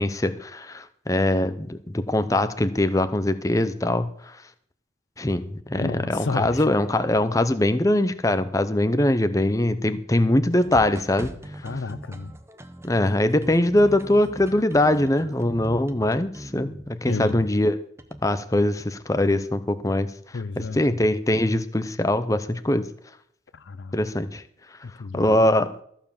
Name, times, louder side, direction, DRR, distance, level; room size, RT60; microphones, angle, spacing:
voice 1, 0.0-4.1 5.2-11.3 12.8-17.8 18.2-20.1 20.6-22.8 23.9-24.4 25.1-25.7, left 1 dB, 15° left, 0.7 m, -22 dB
voice 2, 5.8-6.6 11.6-12.3 17.1-17.4 20.3-20.8 23.5-24.2 24.8-25.4, left 4 dB, 75° left, 0.6 m, -32 dB
sound 1, 10.5-17.5 18.0-18.2, right 1 dB, 15° right, 0.9 m, -40 dB
14.5 x 7.1 x 7.2 m
head